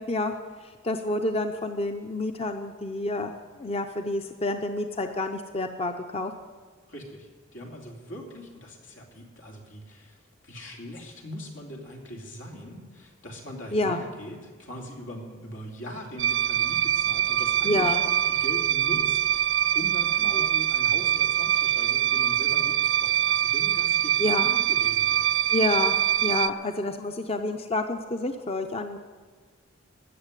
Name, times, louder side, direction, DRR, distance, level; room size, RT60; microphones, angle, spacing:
voice 1, 0.0-6.3 13.7-14.0 17.6-18.0 20.2-20.4 24.2-24.5 25.5-26.0 26.2-29.0, left 2 dB, 30° left, 6 dB, 0.6 m, -29 dB
voice 2, 6.9-10.2 10.4-25.3, equal, 90° left, 1 dB, 2.8 m, -41 dB
sound 1, 16.2-26.5, right 11 dB, 75° right, 0.4 m, -24 dB
16.0 x 6.7 x 9.9 m, 1.5 s
head